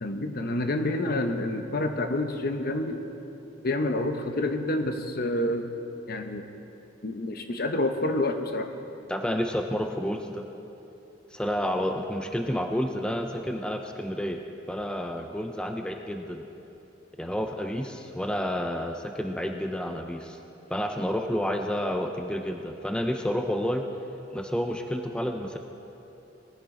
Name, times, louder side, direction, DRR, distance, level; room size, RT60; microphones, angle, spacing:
voice 1, 0.0-3.0 3.6-5.7 6.1-6.5 7.0-8.7, left 1 dB, 55° left, 6 dB, 0.8 m, -28 dB
voice 2, 9.1-10.4 11.3-14.4 14.7-16.4 17.2-20.4 20.7-23.8 24.3-25.6, equal, 5° left, 4 dB, 0.5 m, -30 dB
18.5 x 10.5 x 3.8 m, 2.9 s
head